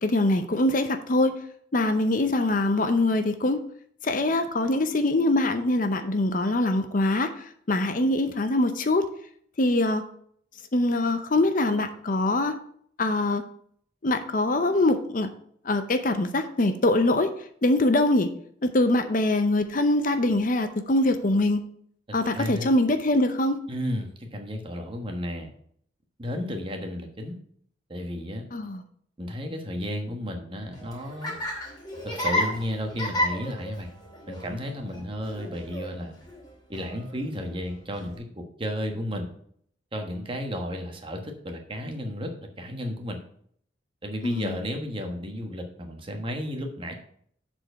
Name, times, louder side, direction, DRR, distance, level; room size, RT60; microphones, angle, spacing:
voice 1, 0.0-1.4 1.7-3.6 4.0-7.3 7.7-9.1 9.6-10.0 10.7-12.5 13.0-13.4 14.0-15.3 15.7-17.3 17.6-18.3 18.6-21.6 22.1-23.6 28.5-28.8 44.2-44.5, left 2 dB, 45° left, 9 dB, 0.6 m, -23 dB
voice 2, 22.1-22.7 23.7-25.5 26.2-27.4 27.9-28.4 29.2-31.3 32.0-33.9 34.3-36.1 36.7-39.3 39.9-43.2 44.0-46.9, equal, 30° right, 4 dB, 1.2 m, -33 dB
Laughter, 30.6-38.2, left 1 dB, 20° left, 2.5 m, -33 dB
7.6 x 4.4 x 6.6 m, 0.63 s
head